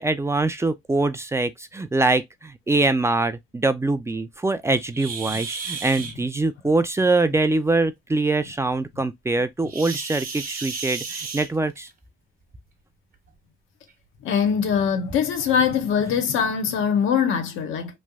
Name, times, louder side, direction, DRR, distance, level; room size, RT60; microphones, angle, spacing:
voice 1, 0.0-11.9, right 2 dB, 15° right, 0.3 m, -23 dB
sound 1, 4.9-6.1 9.7-11.9 13.1-13.3 13.9-14.0 14.6-14.7 15.5-15.6 16.0-16.2, right 5 dB, 45° right, 0.9 m, -33 dB
voice 2, 14.2-18.0, left 7 dB, 85° left, 0.7 m, -22 dB
3.1 x 2.6 x 2.3 m
cardioid pair, 90°, 20 cm